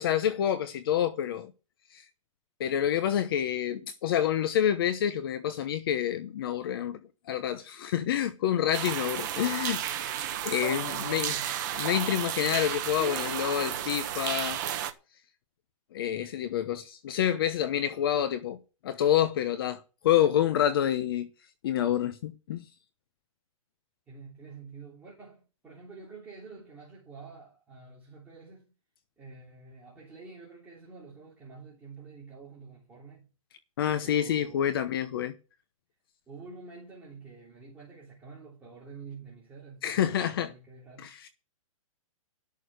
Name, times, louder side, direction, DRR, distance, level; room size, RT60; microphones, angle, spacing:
voice 1, 0.0-1.5 1.9-2.0 2.6-7.0 7.3-10.1 10.4-11.3 11.8-14.6 15.9-18.6 18.8-21.3 21.6-22.6 33.8-35.4 39.8-40.5 41.0-41.3, left 10 dB, 40° left, 0.9 m, -28 dB
sound 1, 8.7-14.9, right 10 dB, 35° right, 1.3 m, -32 dB
voice 2, 10.6-11.5 24.1-28.7 29.2-33.3 34.0-35.0 36.3-41.1, right 4 dB, 10° right, 3.2 m, -48 dB
13.5 x 6.6 x 8.0 m
hypercardioid pair, 170°, 18 cm